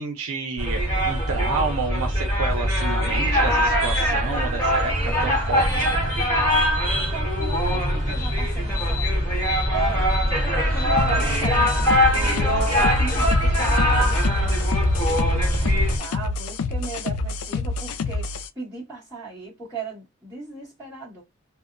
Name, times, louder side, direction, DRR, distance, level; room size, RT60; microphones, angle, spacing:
voice 1, 0.0-5.9, right 4 dB, 80° right, 0.5 m, -30 dB
sound 1, 0.6-16.0, equal, 15° left, 1.1 m, -22 dB
voice 2, 7.1-9.3 9.7-10.1 10.7-14.7 15.0-21.2, right 4 dB, 10° right, 1.5 m, -37 dB
sound 2, 11.0-18.5, left 3 dB, 75° left, 0.3 m, -28 dB
2.7 x 2.1 x 2.5 m
head